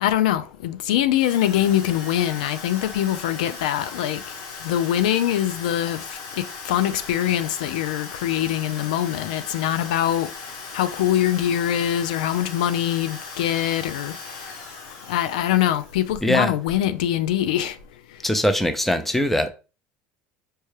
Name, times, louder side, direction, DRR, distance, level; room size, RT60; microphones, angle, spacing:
voice 1, 0.0-4.2 4.6-6.0 6.4-10.3 10.7-14.1 15.1-17.8, left 11 dB, 90° left, 0.3 m, -23 dB
Drill, 1.1-16.3, left 4 dB, 70° left, 1.1 m, -38 dB
voice 2, 16.2-16.5 18.2-19.5, equal, 5° left, 0.5 m, -21 dB
4.4 x 2.2 x 3.2 m
supercardioid pair, 100°, 4 cm